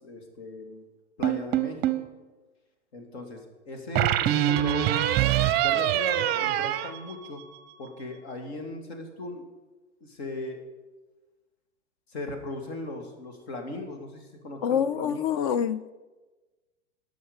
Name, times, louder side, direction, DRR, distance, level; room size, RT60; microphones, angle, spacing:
voice 1, 0.0-0.8 1.2-1.9 2.9-5.0 5.6-7.4 7.8-9.4 10.0-10.6 12.1-15.3, left 2 dB, 60° left, 5 dB, 2.5 m, -38 dB
sound 1, 1.2-2.1 4.0-7.7, right 12 dB, 25° right, 0.7 m, -25 dB
voice 2, 14.6-15.9, left 8 dB, 30° left, 15 dB, 0.4 m, -26 dB
18.0 x 6.4 x 5.3 m, 1.2 s
figure-of-eight pair, 100°, 36 cm